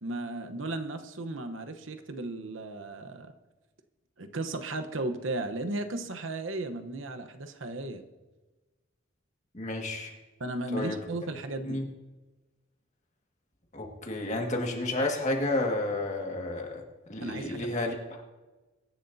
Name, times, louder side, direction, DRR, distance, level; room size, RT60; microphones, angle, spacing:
voice 1, 0.0-3.3 4.2-8.0 10.4-11.8 17.2-17.7, right 2 dB, 75° right, 8 dB, 1.0 m, -35 dB
voice 2, 9.5-10.1 10.7-11.0 11.6-11.9 13.7-16.8 17.1-18.2, left 2 dB, 35° left, 1 dB, 1.9 m, -31 dB
23.0 x 11.0 x 2.7 m, 1.2 s
head